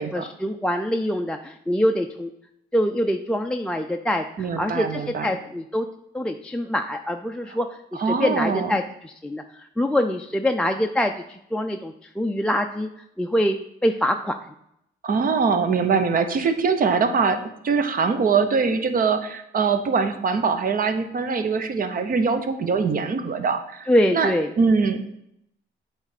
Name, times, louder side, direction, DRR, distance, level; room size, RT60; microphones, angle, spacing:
voice 1, 0.0-2.3 2.7-5.9 6.1-7.7 7.9-12.9 13.2-13.6 13.8-14.3 23.9-24.5, equal, 5° left, 4 dB, 0.4 m, -24 dB
voice 2, 4.4-5.4 8.0-8.8 15.0-24.3 24.6-25.0, right 5 dB, 45° right, 8 dB, 0.8 m, -23 dB
7.8 x 3.3 x 4.9 m, 0.78 s
cardioid pair, 90°, 20 cm